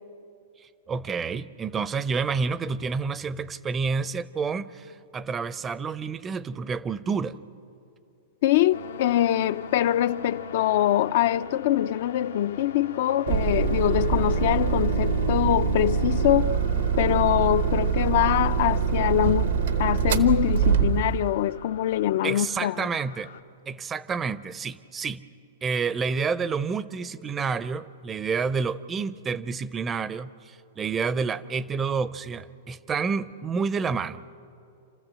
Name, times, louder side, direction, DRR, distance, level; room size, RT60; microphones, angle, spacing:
voice 1, 0.9-7.4 22.2-23.3 23.7-25.2 25.6-34.3, right 5 dB, 20° right, 0.5 m, -29 dB
voice 2, 8.4-16.5 17.0-22.9, left 12 dB, 60° left, 0.4 m, -24 dB
sound 1, 8.7-23.4, left 5 dB, 85° left, 1.1 m, -40 dB
sound 2, 13.3-21.3, right 7 dB, 75° right, 1.0 m, -24 dB
28.5 x 13.5 x 7.5 m
hypercardioid pair, 140°, 0 cm